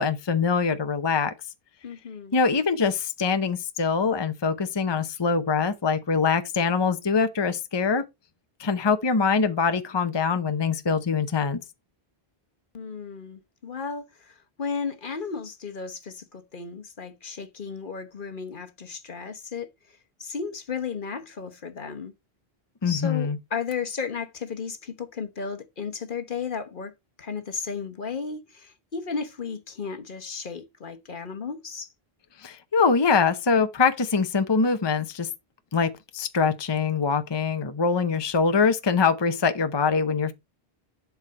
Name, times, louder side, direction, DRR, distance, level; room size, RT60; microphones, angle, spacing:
voice 1, 0.0-1.3 2.3-8.0 8.6-11.6 22.8-23.4 32.4-35.3 35.7-40.3, left 5 dB, 30° left, 0.8 m, -23 dB
voice 2, 1.8-2.4 12.7-22.1 22.8-26.9 27.2-31.9, left 5 dB, 55° left, 1.2 m, -34 dB
11.5 x 4.7 x 4.1 m
omnidirectional pair, 1.1 m